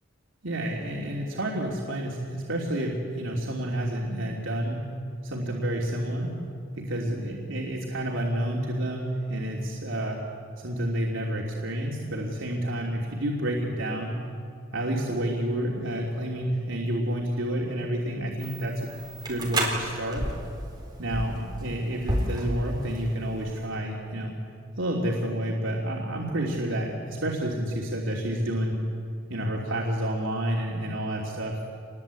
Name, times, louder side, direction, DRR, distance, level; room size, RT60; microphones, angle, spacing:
voice 1, 0.4-4.9 5.2-6.3 6.8-10.2 10.6-14.2 14.7-18.9 19.3-20.3 21.0-24.3 24.8-28.8 29.3-31.6, right 1 dB, 75° right, -3 dB, 3.0 m, -29 dB
sound 1, 18.4-23.7, right 1 dB, 20° right, 4.0 m, -32 dB
27.0 x 21.0 x 8.5 m, 2.4 s
head